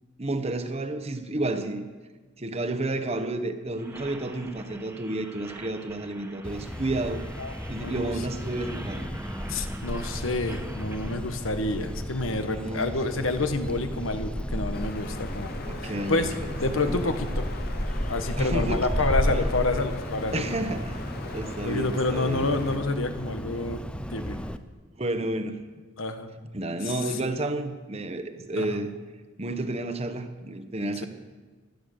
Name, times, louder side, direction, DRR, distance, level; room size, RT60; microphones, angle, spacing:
voice 1, 0.2-1.9 2.4-7.2 7.7-9.1 12.5-12.9 15.7-16.9 18.4-18.9 20.3-22.5 25.0-25.6 26.5-28.9 29.4-31.1, right 2 dB, 30° right, 8 dB, 1.0 m, -31 dB
sound 1, 3.8-11.1, right 1 dB, 10° right, 1.3 m, -44 dB
sound 2, 6.4-24.6, equal, 5° left, 0.5 m, -33 dB
voice 2, 7.4-8.1 9.5-15.5 15.8-16.3 16.6-17.4 18.1-20.6 21.6-23.8 24.1-24.4 26.0-26.3 26.9-27.0 28.6-28.8, left 2 dB, 85° left, 8 dB, 1.4 m, -28 dB
sound 3, 14.7-22.8, left 2 dB, 50° left, 1.4 m, -41 dB
16.0 x 11.5 x 6.7 m, 1.4 s
head